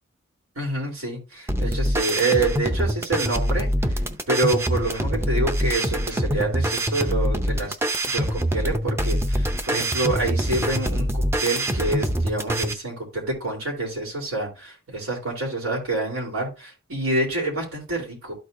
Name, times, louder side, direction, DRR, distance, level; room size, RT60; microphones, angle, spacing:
voice 1, 0.6-3.7 4.3-7.8 8.0-18.3, right 2 dB, 85° right, -1 dB, 3.5 m, -27 dB
sound 1, 1.5-12.7, equal, 10° right, 0.6 m, -24 dB
13.0 x 4.4 x 2.6 m, 0.30 s
head